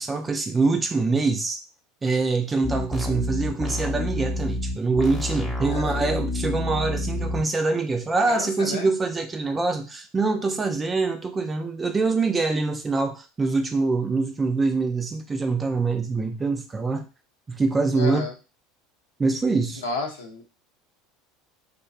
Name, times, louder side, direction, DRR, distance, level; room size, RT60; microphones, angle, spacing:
voice 1, 0.0-1.6 2.0-17.0 17.5-18.3 19.2-19.8, right 3 dB, 20° right, 6 dB, 0.4 m, -24 dB
sound 1, 2.6-7.4, left 1 dB, 10° left, 0.8 m, -28 dB
voice 2, 5.7-6.0 8.3-8.9 17.9-18.3 19.8-20.4, left 4 dB, 90° left, 1 dB, 0.7 m, -31 dB
2.5 x 2.2 x 2.4 m, 0.31 s
hypercardioid pair, 85°, 0 cm